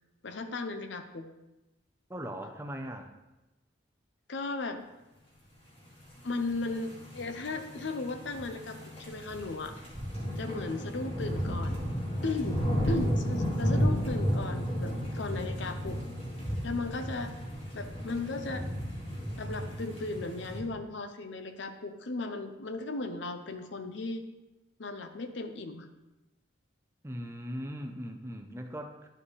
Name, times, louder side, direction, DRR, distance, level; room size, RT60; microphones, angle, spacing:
voice 1, 0.2-1.3 2.4-2.5 4.3-4.8 6.2-9.8 10.4-11.8 12.2-12.6 12.9-16.0 16.6-17.3 17.7-18.6 19.4-24.3 24.8-25.9, left 3 dB, 70° left, 8 dB, 0.7 m, -36 dB
voice 2, 2.1-3.1 27.0-29.1, equal, 15° right, 4 dB, 0.6 m, -39 dB
sound 1, 6.3-20.6, equal, 30° left, 2.1 m, -33 dB
11.5 x 4.9 x 3.2 m, 1.0 s
head